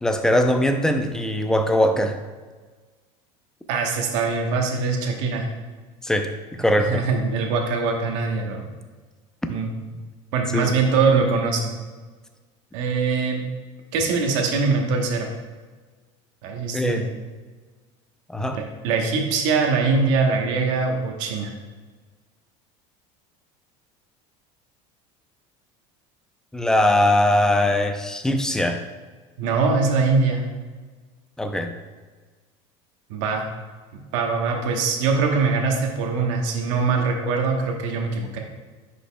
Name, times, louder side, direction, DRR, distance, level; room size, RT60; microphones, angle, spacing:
voice 1, 0.0-2.2 6.0-7.0 10.5-10.8 16.7-17.0 18.3-18.6 26.5-28.8 31.4-31.7, left 1 dB, 5° left, 6 dB, 0.5 m, -21 dB
voice 2, 3.7-5.5 6.8-8.7 9.5-9.8 10.3-11.7 12.7-13.4 13.9-15.3 16.4-17.1 18.5-21.5 29.4-30.4 33.1-33.5 34.1-38.4, right 4 dB, 75° right, 2 dB, 1.1 m, -22 dB
9.9 x 5.3 x 2.3 m, 1.4 s
supercardioid pair, 135°, 16 cm